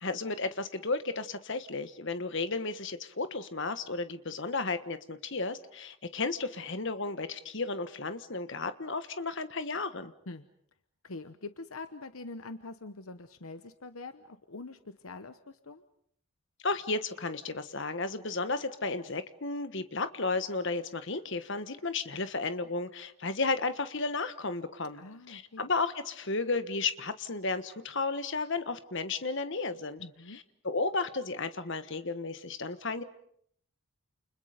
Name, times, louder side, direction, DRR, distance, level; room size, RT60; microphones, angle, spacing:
voice 1, 0.0-10.1 16.6-30.0 30.3-33.0, left 3 dB, 55° left, 10 dB, 1.5 m, -33 dB
voice 2, 11.0-15.8 24.9-25.7 30.0-30.4, left 3 dB, 70° left, 10 dB, 1.1 m, -44 dB
29.5 x 29.5 x 5.2 m, 0.66 s
head